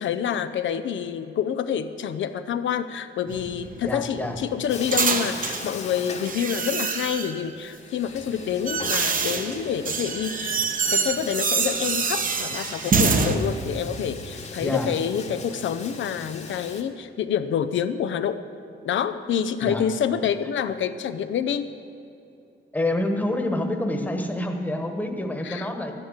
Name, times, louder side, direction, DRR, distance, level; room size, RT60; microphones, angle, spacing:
voice 1, 0.0-18.4 18.8-21.7 25.4-25.7, left 8 dB, 75° left, 10 dB, 0.6 m, -27 dB
sound 1, 3.3-5.7 6.3-7.5 8.2-13.4, right 5 dB, 45° right, 1.0 m, -26 dB
voice 2, 3.8-4.3 14.6-14.9 19.6-19.8 22.7-25.9, left 1 dB, 10° left, 4 dB, 1.3 m, -27 dB
Bathtub (filling or washing), 4.7-7.0 7.2-7.3 7.8-16.8, left 4 dB, 35° left, 1.2 m, -40 dB
12.0 x 10.0 x 8.1 m, 2.8 s
wide cardioid pair, 155°, 20 cm